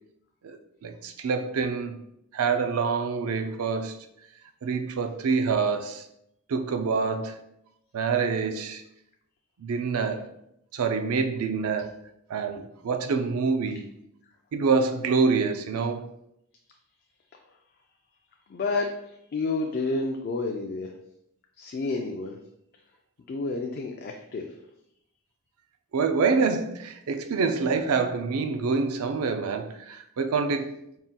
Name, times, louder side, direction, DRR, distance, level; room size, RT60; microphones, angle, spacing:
voice 1, 0.4-2.0 2.3-4.0 4.6-6.0 6.5-7.4 7.9-8.8 9.6-10.3 10.7-11.9 12.3-13.9 14.5-16.1 25.9-31.0, right 5 dB, 75° right, 0.4 m, -26 dB
voice 2, 18.5-20.9 21.6-22.4 23.3-24.5, left 3 dB, 45° left, 0.3 m, -30 dB
4.1 x 3.6 x 2.2 m
head